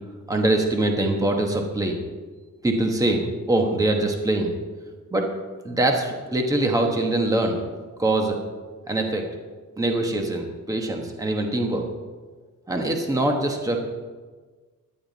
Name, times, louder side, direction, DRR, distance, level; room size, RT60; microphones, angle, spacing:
voice 1, 0.3-2.0 2.6-4.5 5.1-5.3 5.6-7.6 8.0-8.4 8.9-9.3 9.8-11.9 12.7-13.8, right 2 dB, 10° right, 2 dB, 1.1 m, -23 dB
16.5 x 11.0 x 4.0 m, 1.4 s
cardioid pair, 175°, 30 cm